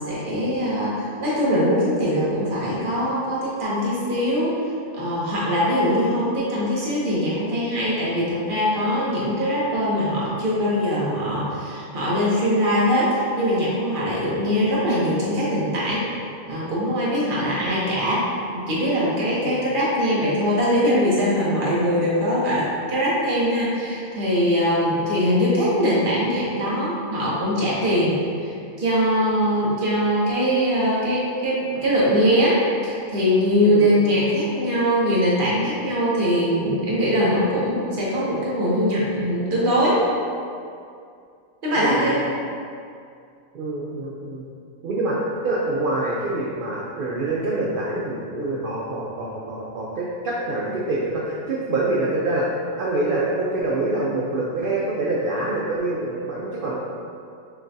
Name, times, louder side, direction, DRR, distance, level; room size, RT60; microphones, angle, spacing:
voice 1, 0.0-4.6 4.9-16.1 16.5-18.3 18.5-40.1 41.6-42.3, equal, 40° right, -7 dB, 1.0 m, -22 dB
voice 2, 33.6-34.1 41.8-42.1 43.5-44.4 44.8-45.2 45.4-56.7, right 2 dB, 75° right, -5 dB, 0.5 m, -26 dB
5.8 x 2.3 x 2.7 m, 2.4 s
omnidirectional pair, 1.4 m